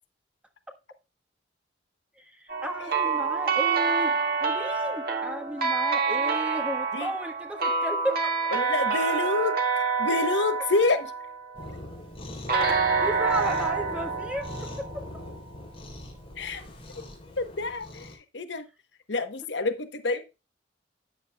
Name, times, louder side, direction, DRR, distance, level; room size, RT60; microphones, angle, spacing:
voice 1, 2.2-8.3 13.0-14.9, equal, 5° right, 4 dB, 1.3 m, -34 dB
sound 1, 2.5-11.7 12.5-15.4, right 5 dB, 50° right, 2.0 m, -27 dB
voice 2, 2.8-3.1 6.9-7.1 8.5-11.1 16.4-16.6 17.4-18.7 19.1-20.2, left 3 dB, 70° left, 9 dB, 1.0 m, -28 dB
Cat, 11.5-18.2, left 1 dB, 30° left, 4.1 m, -41 dB
12.5 x 9.0 x 2.3 m, 0.28 s
head